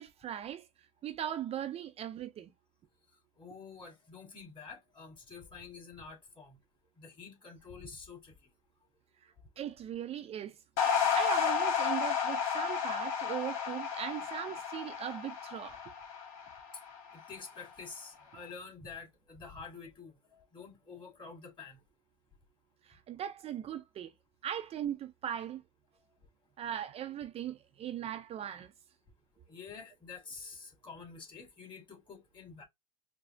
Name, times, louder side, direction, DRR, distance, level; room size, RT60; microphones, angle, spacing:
voice 1, 0.0-2.5 9.2-10.6 11.1-15.8 22.8-24.1 24.4-25.6 26.6-28.7, right 10 dB, 35° right, 0.5 m, -39 dB
voice 2, 3.4-6.6 7.0-8.3 9.4-9.5 12.4-12.8 13.4-13.5 16.4-16.5 17.0-21.8 29.5-32.6, left 5 dB, 25° left, 2.3 m, -49 dB
sound 1, 10.8-17.3, left 7 dB, 60° left, 1.6 m, -32 dB
4.8 x 2.0 x 3.7 m
hypercardioid pair, 85°, 17 cm